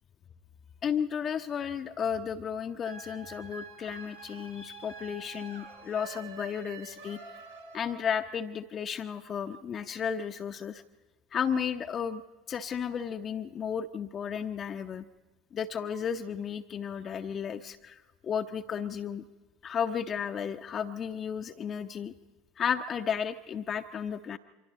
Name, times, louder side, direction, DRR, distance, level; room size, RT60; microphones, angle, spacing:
voice 1, 0.8-7.2 7.7-10.8 11.3-12.2 12.5-15.0 15.5-18.0 18.2-19.2 19.6-22.1 22.6-24.4, left 7 dB, 30° left, 5 dB, 0.8 m, -33 dB
sound 1, 2.8-8.3, right 4 dB, 85° right, 5.2 m, -47 dB
28.0 x 25.0 x 4.1 m, 1.3 s
figure-of-eight pair, 70°, 0 cm